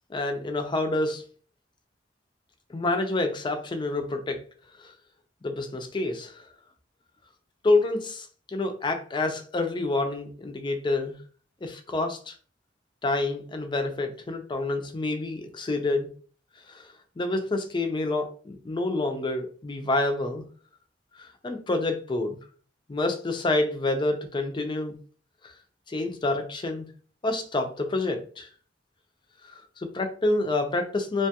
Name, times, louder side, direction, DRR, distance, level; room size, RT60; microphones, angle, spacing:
voice 1, 0.1-1.2 2.7-4.4 4.8-4.9 5.4-6.5 7.6-8.3 8.5-11.2 11.6-12.3 13.0-16.1 16.7-16.8 17.2-20.4 21.2-22.4 22.9-24.9 25.4-25.5 25.9-26.9 27.2-28.5 29.8-31.3, left 2 dB, 25° left, 6 dB, 0.4 m, -28 dB
2.9 x 2.2 x 2.8 m, 0.40 s
head